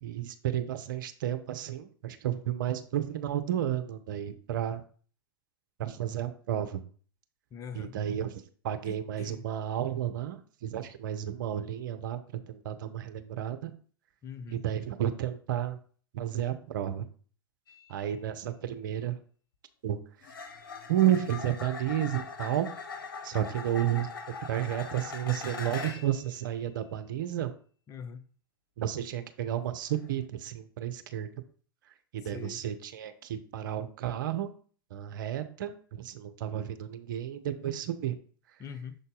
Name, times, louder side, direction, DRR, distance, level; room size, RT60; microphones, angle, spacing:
voice 1, 0.0-4.8 5.8-6.8 7.7-12.2 12.5-13.7 14.5-15.8 16.1-17.1 17.9-19.2 19.8-20.0 20.9-22.7 23.2-24.1 24.5-27.5 28.8-31.3 32.1-34.5 34.9-38.2, right 11 dB, 60° right, 0.8 m, -32 dB
voice 2, 7.5-7.9 8.8-9.5 14.2-14.6 27.9-28.2 32.2-32.6 38.6-38.9, left 6 dB, 25° left, 0.6 m, -43 dB
sound 1, 17.7-17.9 20.2-26.2 29.9-30.1, left 5 dB, 60° left, 1.3 m, -41 dB
6.8 x 4.0 x 3.8 m
figure-of-eight pair, 95°, 12 cm